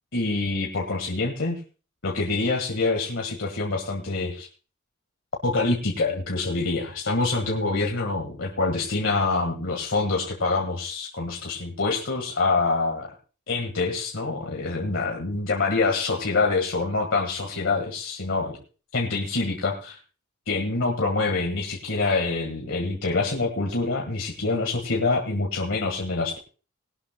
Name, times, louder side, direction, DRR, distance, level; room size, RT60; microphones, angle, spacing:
voice 1, 0.1-1.6 2.0-4.5 5.4-13.1 13.5-18.6 18.9-20.0 20.5-26.4, left 3 dB, 70° left, 0 dB, 1.7 m, -26 dB
19.5 x 11.5 x 2.2 m, 0.36 s
head